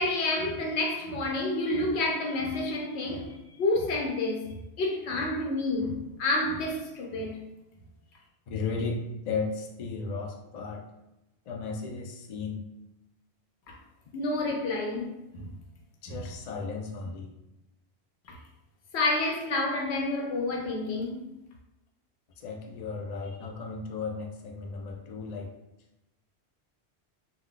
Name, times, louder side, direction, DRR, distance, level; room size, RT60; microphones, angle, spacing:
voice 1, 0.0-7.4 14.1-15.5 16.1-16.2 18.3-18.4 18.9-21.2, left 2 dB, 75° left, 0.9 m, -29 dB
voice 2, 8.5-10.8 11.5-12.6 16.0-17.3 22.4-25.5, left 4 dB, 60° left, 0.4 m, -35 dB
2.3 x 2.2 x 3.7 m
omnidirectional pair, 1.1 m